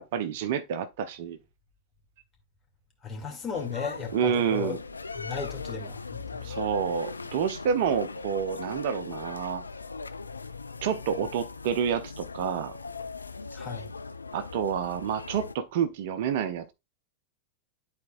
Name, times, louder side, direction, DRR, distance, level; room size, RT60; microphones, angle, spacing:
voice 1, 0.0-1.4 4.1-4.8 6.4-9.6 10.8-12.8 14.3-16.6, right 7 dB, 50° right, 0.6 m, -28 dB
voice 2, 3.0-4.8 5.2-6.5 13.5-13.9, left 6 dB, 20° left, 2.2 m, -35 dB
sound 1, 3.5-15.5, left 4 dB, 80° left, 0.4 m, -39 dB
11.5 x 4.3 x 2.4 m
figure-of-eight pair, 90°, 0 cm